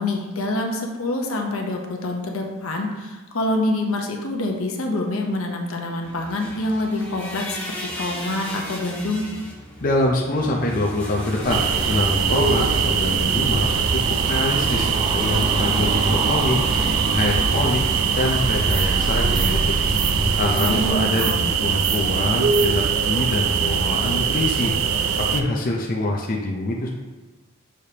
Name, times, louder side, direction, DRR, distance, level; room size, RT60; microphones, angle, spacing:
voice 1, 0.0-9.2 20.6-21.5, left 1 dB, 70° left, 1 dB, 0.9 m, -26 dB
sound 1, 6.0-14.0, equal, 5° left, 1.5 m, -36 dB
voice 2, 9.8-16.6 17.1-17.8 18.1-19.7 20.1-24.7 25.1-26.9, left 1 dB, 40° left, -2 dB, 0.6 m, -25 dB
sound 2, 11.4-20.9, right 1 dB, 20° right, 0.5 m, -27 dB
sound 3, 11.5-25.4, right 6 dB, 75° right, 0.4 m, -22 dB
6.5 x 5.0 x 2.9 m, 1.2 s
head